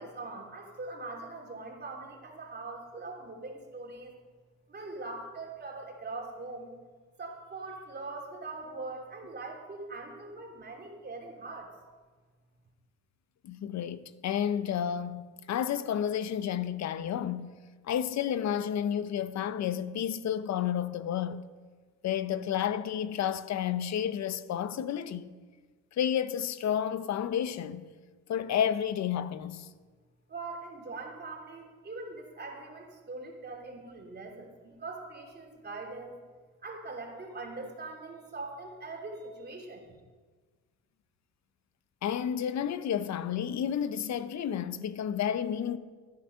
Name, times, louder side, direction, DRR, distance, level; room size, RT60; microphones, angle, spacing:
voice 1, 0.0-4.1 4.7-6.7 7.2-11.7 30.3-36.2 36.6-40.0, right 3 dB, 35° right, 3.0 m, -42 dB
voice 2, 13.4-17.5 17.8-21.5 22.0-25.3 25.9-27.8 28.3-29.7 42.0-45.8, left 9 dB, 65° left, 0.8 m, -31 dB
15.0 x 9.6 x 5.8 m
cardioid pair, 90°, 30 cm